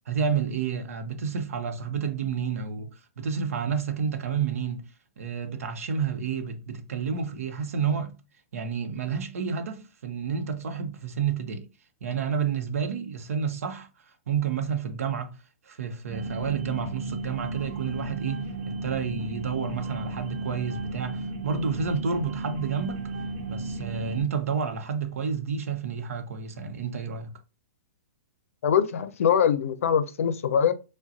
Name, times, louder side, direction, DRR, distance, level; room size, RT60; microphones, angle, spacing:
voice 1, 0.1-4.8 5.2-8.2 8.5-11.7 12.0-15.4 15.6-23.1 23.5-27.3, right 6 dB, 80° right, 0.8 m, -30 dB
sound 1, 16.1-24.2, right 3 dB, 40° right, 0.9 m, -34 dB
voice 2, 28.6-30.7, left 8 dB, 70° left, 0.6 m, -23 dB
4.9 x 2.2 x 2.7 m
hypercardioid pair, 145°, 8 cm